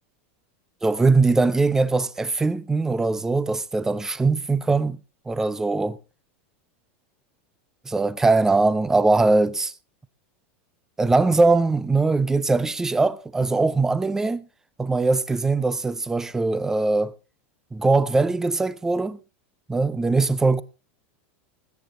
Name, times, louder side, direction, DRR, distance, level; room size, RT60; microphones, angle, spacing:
voice 1, 0.8-5.0 5.3-6.0 7.9-9.7 11.0-14.5 14.8-17.1 17.7-19.2 19.7-20.6, right 3 dB, 5° right, 0.5 m, -21 dB
20.0 x 9.2 x 3.8 m
supercardioid pair, 160°, 7 cm